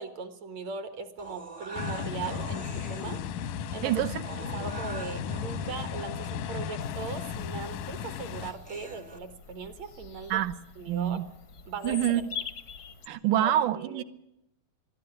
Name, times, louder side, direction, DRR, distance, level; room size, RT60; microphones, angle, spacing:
voice 1, 0.0-3.2 3.7-4.0 4.4-10.4 10.8-11.2 11.7-12.3 13.4-14.0, right 4 dB, 60° right, 9 dB, 2.6 m, -39 dB
sound 1, 1.2-9.2, right 3 dB, 25° right, 0.8 m, -45 dB
sound 2, 1.8-8.5, left 7 dB, 85° left, 2.5 m, -35 dB
voice 2, 3.8-4.2 10.3-10.6 10.9-11.3 11.8-12.2 13.1-14.0, right 12 dB, 80° right, 13 dB, 2.5 m, -26 dB
Bird vocalization bird call bird song, 6.8-13.1, left 6 dB, 65° left, 0.8 m, -44 dB
22.0 x 13.0 x 9.9 m, 0.83 s
omnidirectional pair, 3.6 m